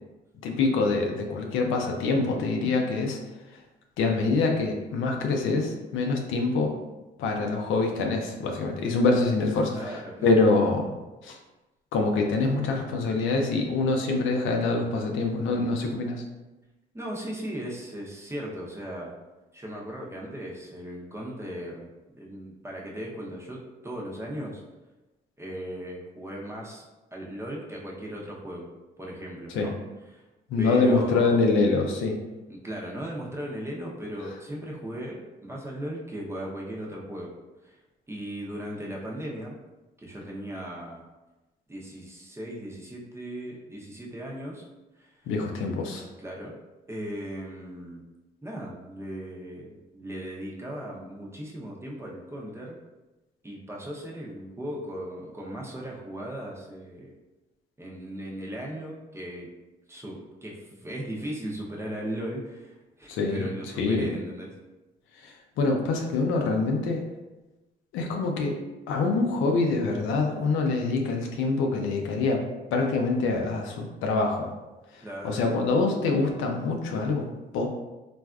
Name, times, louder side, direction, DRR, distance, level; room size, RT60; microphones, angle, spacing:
voice 1, 0.4-3.2 4.0-6.7 7.2-10.9 11.2-11.4 11.9-16.2 29.5-29.7 30.5-32.2 45.3-46.0 63.1-63.5 63.8-64.1 65.2-67.0 67.9-68.6 68.9-72.4 72.7-74.5 75.2-77.3 77.5-77.7, left 3 dB, 90° left, 2 dB, 0.5 m, -25 dB
voice 2, 9.7-10.4 16.9-19.1 19.5-21.9 22.1-24.6 25.4-26.8 27.1-28.7 29.0-29.7 30.1-30.2 30.6-31.4 32.5-37.3 37.6-37.8 38.1-39.6 40.0-41.0 41.7-44.6 45.0-45.2 46.2-46.6 46.9-48.0 48.4-52.8 53.4-57.1 57.8-59.5 59.9-64.6 75.0-75.5, equal, 15° right, -3 dB, 0.7 m, -37 dB
3.3 x 2.5 x 2.2 m, 1.1 s
cardioid pair, 90°, 20 cm